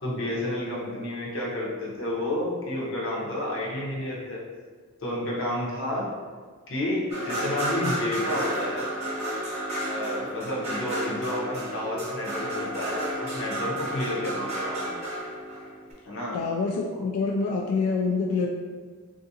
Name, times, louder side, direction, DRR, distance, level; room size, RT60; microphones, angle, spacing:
voice 1, 0.0-4.4 5.0-6.1 6.7-8.9 9.8-15.0 16.1-16.4, left 1 dB, 60° left, -4 dB, 0.8 m, -30 dB
sound 1, 7.1-15.9, right 1 dB, 30° right, 0.9 m, -32 dB
voice 2, 16.3-18.5, left 4 dB, 75° left, 0 dB, 0.3 m, -26 dB
3.7 x 2.4 x 2.7 m, 1.5 s
head